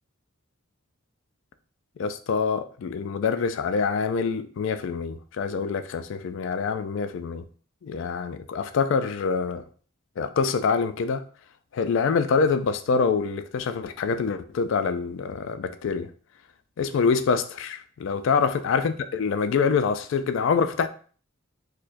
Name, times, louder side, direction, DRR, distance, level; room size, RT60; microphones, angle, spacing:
voice 1, 2.0-7.4 7.8-9.6 10.2-11.2 11.7-16.1 16.8-20.9, left 5 dB, 65° left, 0.3 m, -25 dB
4.4 x 2.2 x 2.5 m
head